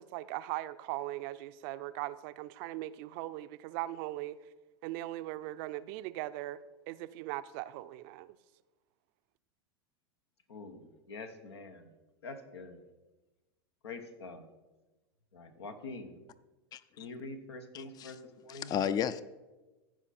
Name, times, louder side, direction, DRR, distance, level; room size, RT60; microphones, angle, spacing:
voice 1, 0.0-4.4 4.8-6.6 6.9-8.4, right 16 dB, 55° right, 13 dB, 0.5 m, -39 dB
voice 2, 10.5-11.9 12.2-12.8 13.8-14.5 15.3-16.2 17.0-18.7, left 3 dB, 85° left, 8 dB, 1.1 m, -45 dB
voice 3, 17.7-18.1 18.6-19.2, left 8 dB, 30° left, 16 dB, 0.4 m, -32 dB
15.0 x 5.0 x 4.2 m, 1.2 s
hypercardioid pair, 95°, 13 cm